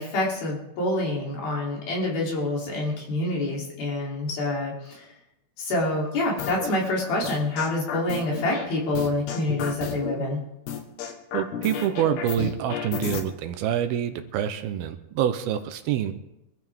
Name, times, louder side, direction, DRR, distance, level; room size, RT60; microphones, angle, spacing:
voice 1, 0.0-5.1 5.6-10.4, left 2 dB, 65° left, -3 dB, 5.2 m, -27 dB
sound 1, 6.4-6.7 7.2-8.7 8.9-10.2 10.7-13.2, left 8 dB, 85° left, 3.5 m, -32 dB
voice 2, 11.3-16.1, right 10 dB, 80° right, 8 dB, 2.6 m, -26 dB
24.0 x 14.0 x 3.6 m, 0.88 s
omnidirectional pair, 4.6 m